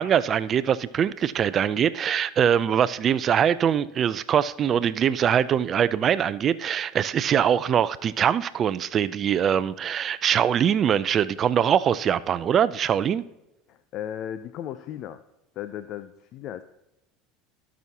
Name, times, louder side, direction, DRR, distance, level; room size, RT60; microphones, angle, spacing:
voice 1, 0.0-13.2, right 8 dB, 40° right, 0.5 m, -23 dB
voice 2, 13.7-15.2 15.6-16.6, left 10 dB, 55° left, 0.5 m, -36 dB
18.5 x 6.2 x 2.8 m
hypercardioid pair, 80°, 0 cm